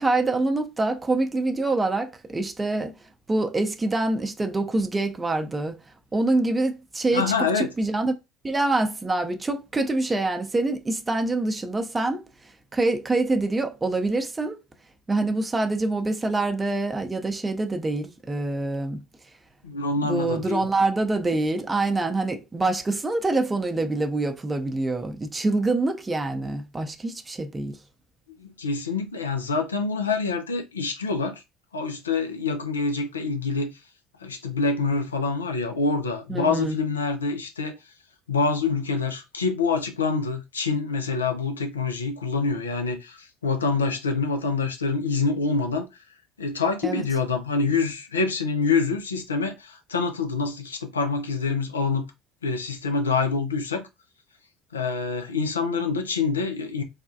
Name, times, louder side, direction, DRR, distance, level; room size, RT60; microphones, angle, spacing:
voice 1, 0.0-2.9 3.3-5.8 6.1-8.1 8.4-12.2 12.7-14.6 15.1-19.0 20.0-27.8 36.3-36.8 46.8-47.0, right 2 dB, 20° right, 0.6 m, -25 dB
voice 2, 7.1-7.7 19.6-20.7 28.4-31.4 31.7-33.7 34.2-37.8 38.3-45.9 46.4-52.1 52.4-53.9 54.7-56.8, left 4 dB, 90° left, 0.4 m, -26 dB
3.3 x 2.3 x 2.6 m
hypercardioid pair, 60°, 0 cm